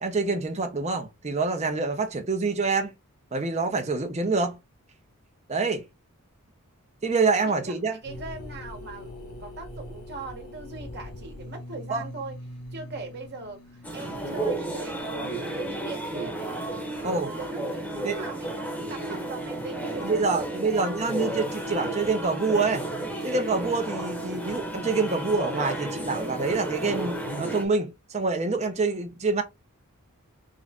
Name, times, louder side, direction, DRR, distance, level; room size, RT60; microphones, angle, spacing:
voice 1, 0.0-2.9 3.3-4.6 5.5-5.8 7.0-8.0 11.9-12.0 17.0-17.3 18.0-18.2 20.0-22.9 23.2-29.4, right 4 dB, 30° right, 0.8 m, -26 dB
voice 2, 7.4-12.3 12.7-16.5 16.9-20.9, right 3 dB, 50° right, 1.3 m, -40 dB
sound 1, 8.0-15.8, left 1 dB, 85° left, 1.1 m, -42 dB
sound 2, 13.8-27.7, right 1 dB, 5° left, 1.0 m, -32 dB
3.7 x 3.1 x 3.6 m
head